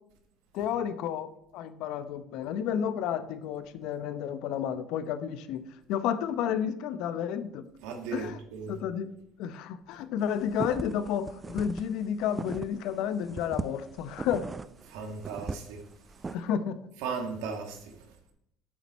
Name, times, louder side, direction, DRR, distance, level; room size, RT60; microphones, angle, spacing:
voice 1, 0.5-1.3 1.5-5.6 5.9-7.7 8.1-8.4 8.7-9.1 9.4-14.5 16.3-16.8, left 8 dB, 70° left, 12 dB, 0.8 m, -31 dB
voice 2, 7.8-8.8 14.9-15.8 17.0-17.9, right 5 dB, 75° right, 4 dB, 1.8 m, -36 dB
sound 1, 10.2-12.9 13.3-16.4, right 4 dB, 25° right, 0.5 m, -38 dB
8.0 x 7.5 x 4.2 m, 0.76 s
supercardioid pair, 80°, 0 cm